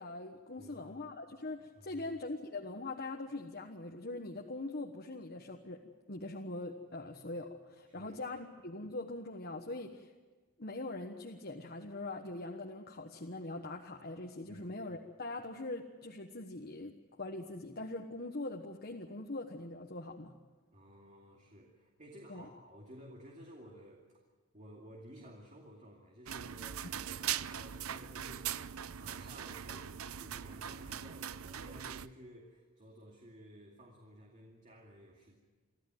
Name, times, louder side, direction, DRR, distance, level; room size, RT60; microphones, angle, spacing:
voice 1, 0.0-5.8 6.1-10.1 10.6-20.3 22.3-22.5, left 2 dB, 50° left, 1 dB, 1.3 m, -42 dB
voice 2, 0.6-1.0 1.7-2.1 7.9-8.2 14.5-14.7 20.7-24.2 24.5-35.4, equal, 35° right, 0 dB, 2.5 m, -54 dB
sound 1, 26.3-32.1, right 9 dB, 85° right, 0.6 m, -41 dB
25.5 x 14.5 x 9.3 m, 1.3 s
head